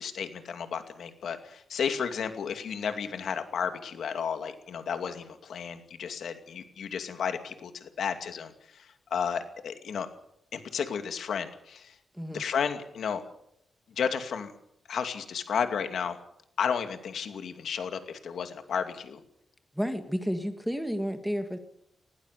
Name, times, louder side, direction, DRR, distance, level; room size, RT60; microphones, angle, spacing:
voice 1, 0.0-10.1 10.5-11.9 12.3-13.2 14.0-14.5 14.9-16.2 16.6-19.2, left 7 dB, 75° left, 8 dB, 2.5 m, -33 dB
voice 2, 19.7-21.6, equal, ahead, 7 dB, 1.9 m, -31 dB
19.5 x 18.0 x 8.3 m, 0.73 s
wide cardioid pair, 150°, 0 cm